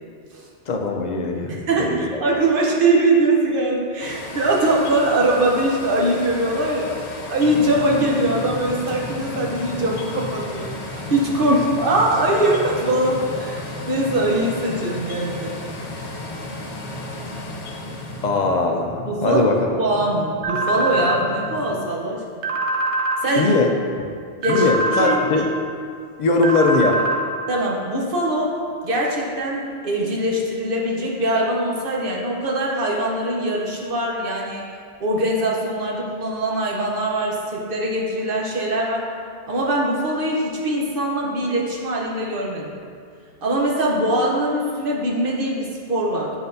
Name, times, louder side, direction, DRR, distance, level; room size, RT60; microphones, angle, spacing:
voice 1, 0.7-1.5 1.8-2.2 11.5-11.6 18.2-19.5 23.4-24.1 24.5-25.4 26.2-27.0, left 3 dB, 50° left, 2 dB, 0.5 m, -20 dB
voice 2, 1.5-15.6 19.1-22.5 23.2-23.5 24.4-25.4 27.5-28.5 28.8-34.6 35.0-39.0 39.5-42.7 43.4-46.3, right 1 dB, 50° right, -2 dB, 1.0 m, -22 dB
sound 1, 4.0-18.3, left 2 dB, 75° left, 1.0 m, -35 dB
sound 2, 7.4-21.8, left 1 dB, 30° left, 0.9 m, -36 dB
sound 3, 20.4-21.2 22.4-23.2 24.4-25.2 26.4-27.2, right 2 dB, 80° right, 1.0 m, -23 dB
7.8 x 5.0 x 2.7 m, 2.2 s
omnidirectional pair, 1.2 m